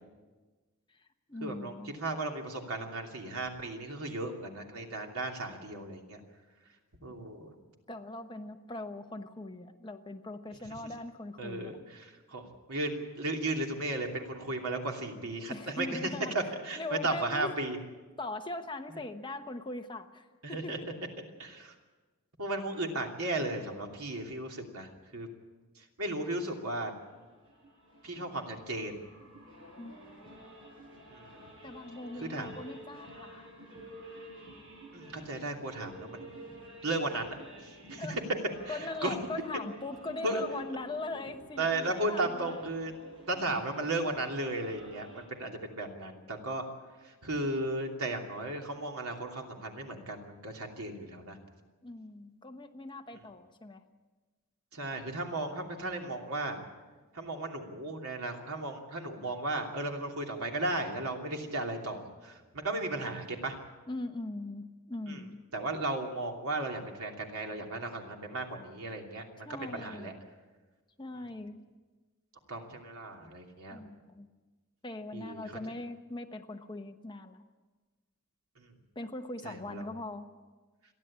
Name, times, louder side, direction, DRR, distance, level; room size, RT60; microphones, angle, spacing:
voice 1, 0.9-1.9 7.9-11.8 15.5-16.3 16.8-17.5 18.2-20.9 29.8-29.9 31.6-33.9 38.0-38.2 38.7-42.6 51.8-53.8 63.9-65.4 69.4-70.1 71.0-71.6 73.7-74.3 74.8-77.4 78.9-80.3, left 2 dB, 20° left, 6 dB, 1.0 m, -41 dB
voice 2, 1.4-6.2 7.0-7.6 11.4-12.4 12.7-16.0 16.3-17.8 18.9-19.0 20.4-20.8 21.4-21.7 22.4-25.3 25.8-26.9 28.0-29.0 31.1-31.4 32.2-32.6 34.9-36.2 36.8-38.1 38.6-39.1 40.2-40.4 41.6-42.9 43.3-46.6 47.0-51.4 54.7-56.6 57.1-63.6 65.1-65.2 65.5-69.5 69.7-70.1 72.5-73.8 75.1-75.4 78.6-78.7 79.4-79.9, right 2 dB, 80° right, 2 dB, 2.9 m, -35 dB
sound 1, 26.9-45.2, right 1 dB, 60° right, 7.2 m, -50 dB
29.0 x 11.0 x 8.8 m, 1.3 s
head